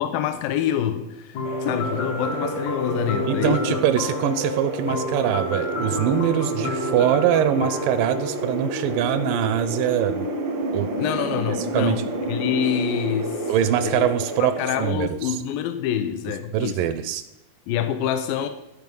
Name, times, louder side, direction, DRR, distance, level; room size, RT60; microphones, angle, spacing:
voice 1, 0.0-3.8 11.0-12.0 12.3-13.5 13.8-14.1 14.4-16.8 17.7-18.5, left 10 dB, 85° left, 9 dB, 2.3 m, -26 dB
sound 1, 1.3-9.2, left 2 dB, 65° left, 2.1 m, -31 dB
sound 2, 1.4-14.9, right 2 dB, 65° right, 1.1 m, -30 dB
voice 2, 3.3-10.3 10.7-10.9 11.7-12.0 13.5-15.4 16.5-17.2, right 10 dB, 80° right, 12 dB, 2.0 m, -23 dB
13.0 x 4.7 x 5.3 m, 0.92 s
omnidirectional pair, 4.1 m